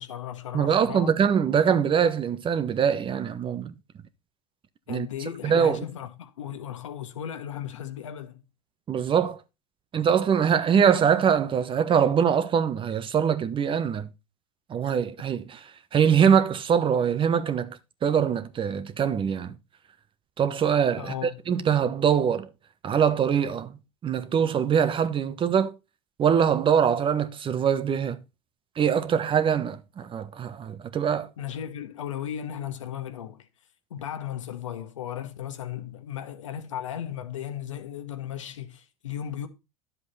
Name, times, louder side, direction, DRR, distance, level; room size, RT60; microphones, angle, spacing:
voice 1, 0.0-1.1 4.9-8.4 21.0-21.4 31.4-33.5 33.9-39.5, left 10 dB, 85° left, 1.5 m, -36 dB
voice 2, 0.5-3.7 4.9-5.1 5.4-5.8 8.9-9.4 9.9-14.1 14.7-15.6 15.9-19.5 20.4-22.5 22.8-25.7 26.2-28.2 28.8-31.3, right 7 dB, 35° right, 1.3 m, -23 dB
10.5 x 7.5 x 4.2 m
hypercardioid pair, 90°, 16 cm